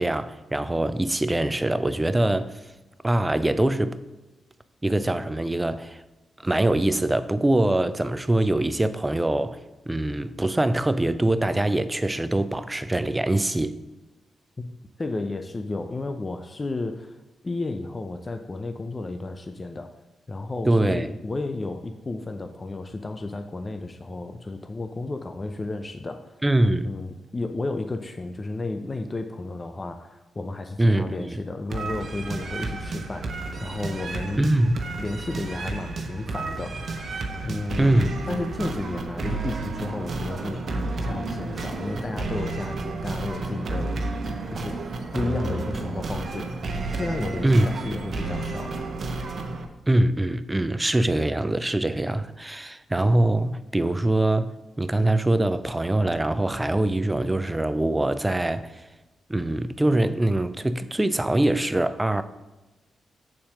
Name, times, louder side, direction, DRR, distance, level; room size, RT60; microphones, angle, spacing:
voice 1, 0.0-2.6 3.0-4.0 4.8-6.0 6.4-9.6 9.9-13.8 20.7-21.1 26.4-26.9 30.8-31.4 34.4-34.8 37.8-38.1 47.4-47.7 49.9-54.5 54.8-58.9 59.3-62.2, right 1 dB, 20° right, 0.5 m, -23 dB
voice 2, 15.0-17.2 17.4-19.9 20.3-26.3 26.8-33.3 33.6-34.5 35.0-37.0 37.4-37.9 38.3-44.0 44.5-44.8 45.1-46.5 46.9-48.8, left 2 dB, 35° left, 0.6 m, -32 dB
sound 1, 31.7-49.7, right 3 dB, 60° right, 1.0 m, -31 dB
7.5 x 4.3 x 6.3 m
supercardioid pair, 45°, 0 cm